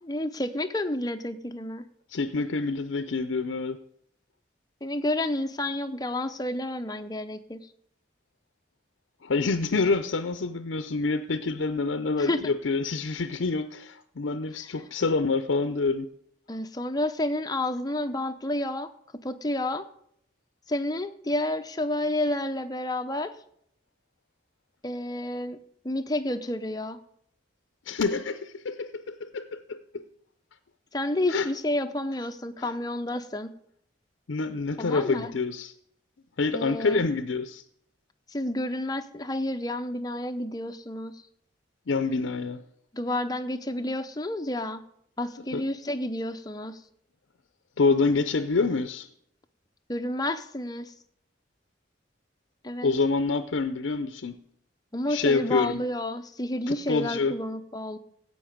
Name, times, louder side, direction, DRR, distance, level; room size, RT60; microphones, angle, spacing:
voice 1, 0.0-1.8 4.8-7.6 12.2-12.4 16.5-18.9 19.2-19.9 20.7-23.3 24.8-25.6 25.8-27.0 30.9-33.5 34.8-35.3 36.5-37.1 38.3-41.1 42.9-44.8 45.2-46.8 49.9-50.9 52.6-52.9 54.9-58.0, left 1 dB, 20° left, 0.6 m, -30 dB
voice 2, 2.1-3.8 9.2-16.1 27.9-30.0 31.3-31.5 32.6-32.7 34.3-35.7 36.4-37.6 41.9-42.6 45.5-45.6 47.8-49.1 52.8-54.4 55.1-55.8 56.7-57.3, left 4 dB, 80° left, 0.6 m, -27 dB
16.0 x 5.4 x 5.1 m
head